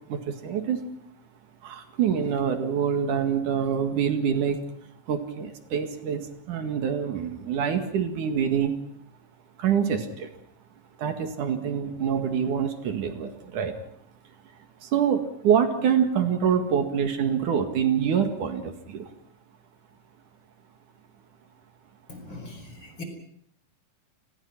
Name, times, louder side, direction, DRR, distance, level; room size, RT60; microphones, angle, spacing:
voice 1, 0.1-0.8 1.6-4.6 5.1-6.2 6.5-8.7 9.6-10.3 11.0-13.7 14.8-19.1, right 8 dB, 75° right, 7 dB, 3.5 m, -25 dB
voice 2, 22.1-23.0, left 2 dB, 35° left, 5 dB, 5.5 m, -41 dB
30.0 x 21.0 x 6.0 m, 0.69 s
omnidirectional pair, 3.7 m